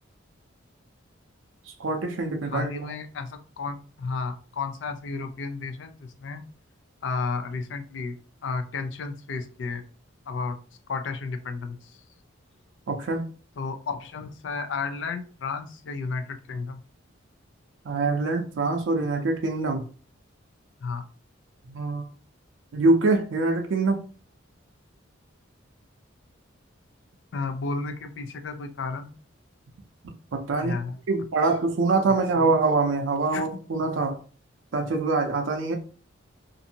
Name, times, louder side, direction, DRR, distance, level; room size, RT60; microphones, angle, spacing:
voice 1, 1.8-2.7 12.9-13.2 17.9-19.8 21.7-22.1 22.7-24.0 30.3-30.7 31.1-34.2 34.7-35.7, right 3 dB, 70° right, 0.5 m, -24 dB
voice 2, 2.5-6.4 7.0-8.2 8.4-9.8 10.3-10.6 10.9-12.0 13.6-16.8 20.8-21.0 27.3-29.2 30.6-31.0 32.3-32.5 33.3-33.5, left 4 dB, 65° left, 0.4 m, -32 dB
2.6 x 2.5 x 2.8 m
head